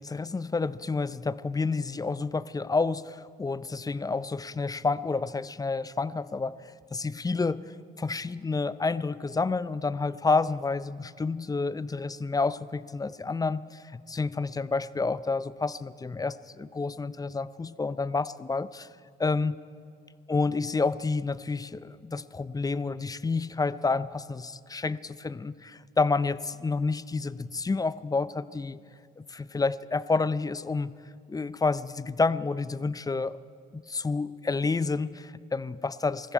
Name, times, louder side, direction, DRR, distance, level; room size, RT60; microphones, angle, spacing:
voice 1, 0.0-18.9 19.2-19.6 20.3-28.8 29.2-30.9 31.3-33.4 33.7-36.3, left 4 dB, 15° left, 17 dB, 0.4 m, -29 dB
20.5 x 14.5 x 4.6 m, 2.2 s
hypercardioid pair, 55°, 21 cm